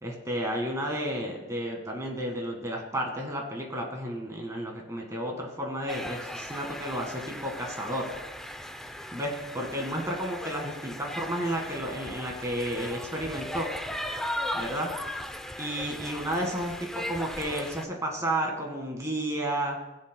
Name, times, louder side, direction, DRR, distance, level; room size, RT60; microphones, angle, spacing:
voice 1, 0.0-8.0 9.1-13.7 14.5-14.9 15.6-19.8, right 1 dB, 15° right, 1 dB, 1.7 m, -32 dB
sound 1, 5.9-17.8, left 1 dB, 5° left, 0.5 m, -37 dB
18.5 x 7.5 x 2.2 m, 0.99 s
head